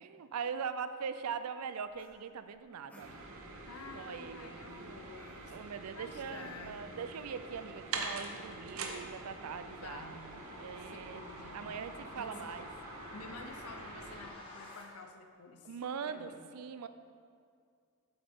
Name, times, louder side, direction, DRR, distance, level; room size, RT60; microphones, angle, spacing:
voice 1, 0.0-3.1 3.9-5.0 5.5-10.1 10.6-12.7 15.6-16.9, right 6 dB, 85° right, 11 dB, 0.4 m, -41 dB
sound 1, 1.9-3.7 4.3-7.0, equal, 5° left, 1.0 m, -62 dB
sound 2, 3.0-14.3, right 3 dB, 70° right, 0.8 m, -45 dB
voice 2, 3.7-5.6 6.0-6.9 9.7-10.4 10.8-11.8 12.1-12.5 13.1-16.4, left 4 dB, 80° left, 6 dB, 0.7 m, -50 dB
sound 3, 6.8-14.8, left 1 dB, 25° left, 1.3 m, -52 dB
8.0 x 7.7 x 3.6 m, 2.3 s
head